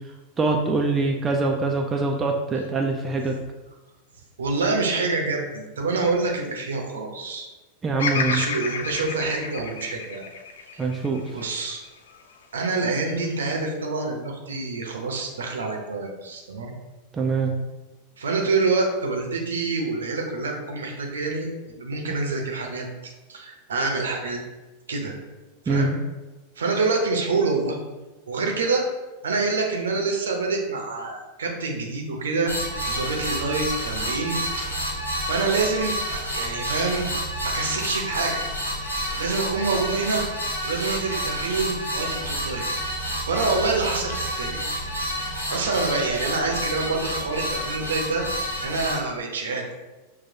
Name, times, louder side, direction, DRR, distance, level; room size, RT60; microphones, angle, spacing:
voice 1, 0.4-3.4 7.8-8.4 10.8-11.2 17.1-17.6 25.7-25.9, right 3 dB, 15° right, 1 dB, 0.4 m, -24 dB
voice 2, 4.4-7.5 8.1-10.3 10.7-10.8 11.3-11.8 12.5-16.7 18.2-24.4 24.9-25.1 25.6-25.9 26.6-27.8 28.3-28.8 29.2-32.5 32.9-34.7 35.2-37.1 37.4-38.4 39.2-40.2 40.6-42.6 43.2-44.6 45.5-48.2 48.6-49.7, right 3 dB, 65° right, 2 dB, 0.7 m, -26 dB
Bird vocalization bird call bird song, 8.0-12.2 12.8-13.5, left 5 dB, 60° left, 0.3 m, -31 dB
sound 1, 32.5-49.0, equal, 90° left, 1.0 m, -29 dB
6.0 x 2.2 x 2.7 m, 1.1 s
figure-of-eight pair, 90°, 0 cm